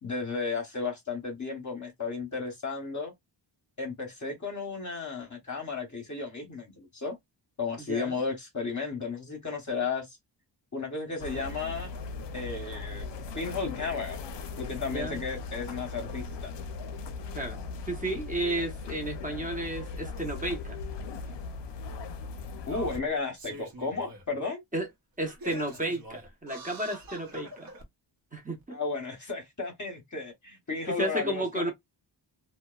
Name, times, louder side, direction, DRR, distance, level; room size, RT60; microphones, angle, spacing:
voice 1, 0.0-3.1 3.8-7.1 7.6-10.2 10.7-11.9 12.3-14.2 14.6-16.5 22.7-24.6 28.7-31.7, left 4 dB, 40° left, 0.8 m, -34 dB
voice 2, 7.8-8.2 14.9-15.3 17.3-17.6 17.8-20.8 24.7-24.9 25.2-27.7 28.3-28.8 30.9-31.7, right 1 dB, 20° right, 0.7 m, -32 dB
sound 1, 11.2-23.0, left 4 dB, 70° left, 0.5 m, -38 dB
Singing, 20.8-20.9 21.9-22.0 22.6-24.3 24.7-24.8 25.3-27.8 28.6-28.7, right 1 dB, 50° right, 0.8 m, -45 dB
2.8 x 2.1 x 2.3 m
wide cardioid pair, 140°, 45 cm